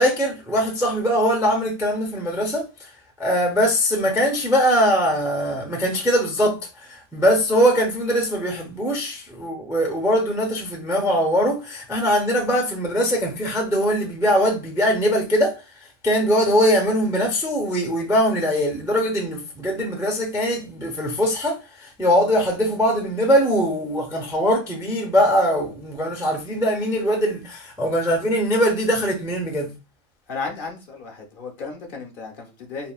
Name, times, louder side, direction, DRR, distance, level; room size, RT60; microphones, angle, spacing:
voice 1, 0.0-2.9 3.2-15.6 16.0-29.7, equal, 5° right, 0.3 m, -21 dB
voice 2, 30.3-32.9, left 4 dB, 55° left, 0.8 m, -34 dB
3.6 x 2.1 x 2.3 m
omnidirectional pair, 1.1 m